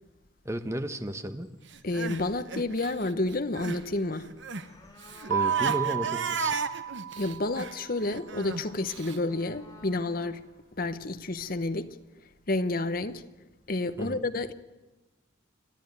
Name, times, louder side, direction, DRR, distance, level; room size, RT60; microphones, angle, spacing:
voice 1, 0.4-1.5 5.3-6.6 14.0-14.2, equal, 15° right, 1.0 m, -33 dB
sound 1, 1.1-11.9, left 2 dB, 20° left, 3.5 m, -56 dB
Crying sobbing, 1.7-3.9 4.1-9.2, right 4 dB, 60° right, 1.0 m, -35 dB
voice 2, 1.8-4.3 7.2-10.4 10.8-11.9 12.5-13.2 13.7-14.5, left 2 dB, 45° left, 1.0 m, -30 dB
Keyboard (musical), 5.3-7.9, right 9 dB, 75° right, 1.5 m, -31 dB
28.5 x 11.5 x 9.5 m
head